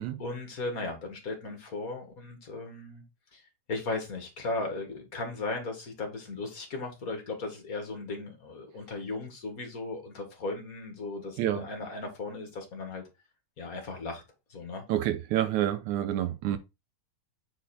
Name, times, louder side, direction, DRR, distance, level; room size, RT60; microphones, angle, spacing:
voice 1, 0.2-3.0 3.3-3.4 3.7-13.0 13.6-14.2 14.5-14.8, left 3 dB, 30° left, 2.1 m, -36 dB
voice 2, 14.9-16.6, right 12 dB, 75° right, 2.0 m, -28 dB
8.5 x 4.6 x 4.4 m
omnidirectional pair, 3.7 m